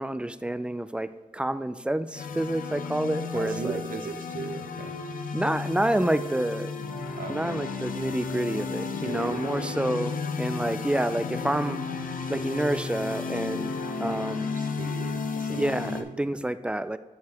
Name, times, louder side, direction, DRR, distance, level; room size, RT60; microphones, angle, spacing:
voice 1, 0.0-3.8 5.3-6.7 7.3-11.8 12.3-13.7 14.0-14.5 15.5-17.0, right 1 dB, 5° right, 13 dB, 0.3 m, -28 dB
sound 1, 2.1-16.0, left 4 dB, 70° left, 0.7 m, -33 dB
voice 2, 3.3-5.0 7.2-7.6 9.0-9.8 14.1-16.3, right 5 dB, 75° right, 6 dB, 0.8 m, -38 dB
9.5 x 6.7 x 2.9 m, 1.2 s
wide cardioid pair, 110°, 14 cm